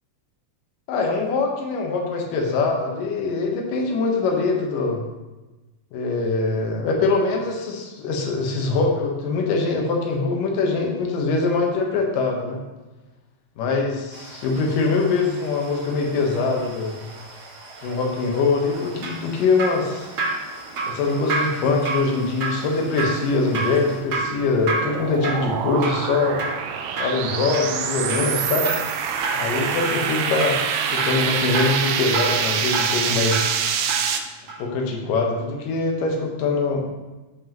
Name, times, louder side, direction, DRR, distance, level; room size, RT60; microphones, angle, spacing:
voice 1, 0.9-5.0 5.9-12.6 13.6-17.0 17.8-20.1 20.9-26.4 27.0-28.7 29.3-30.6 30.9-33.6 34.6-36.8, left 3 dB, 75° left, 1 dB, 2.8 m, -23 dB
sound 1, 14.1-24.0, right 2 dB, 70° right, 3.5 m, -43 dB
Drip, 18.7-34.2 34.5-34.6, right 3 dB, 50° right, 2.3 m, -30 dB
sound 2, 23.9-34.2, right 7 dB, 85° right, 1.6 m, -26 dB
15.0 x 5.5 x 3.0 m, 1.1 s
omnidirectional pair, 4.0 m